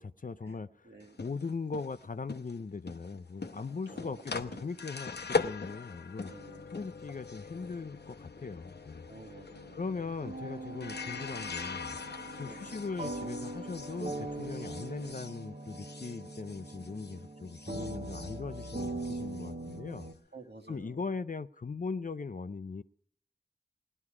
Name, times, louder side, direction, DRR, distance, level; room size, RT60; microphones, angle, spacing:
voice 1, 0.0-6.3 6.7-9.0 9.7-12.0 12.4-20.1 20.7-22.8, left 4 dB, 50° left, 12 dB, 0.4 m, -39 dB
voice 2, 0.8-1.2 3.9-4.6 6.3-6.7 9.1-10.0 12.4-12.9 20.3-21.0, right 3 dB, 80° right, 3 dB, 1.5 m, -52 dB
sound 1, 1.0-17.2 17.5-20.1, left 4 dB, 85° left, 0.8 m, -41 dB
sound 2, 10.2-20.1, right 2 dB, 55° right, 1.1 m, -41 dB
18.5 x 11.0 x 4.8 m, 0.66 s
wide cardioid pair, 40°, 17 cm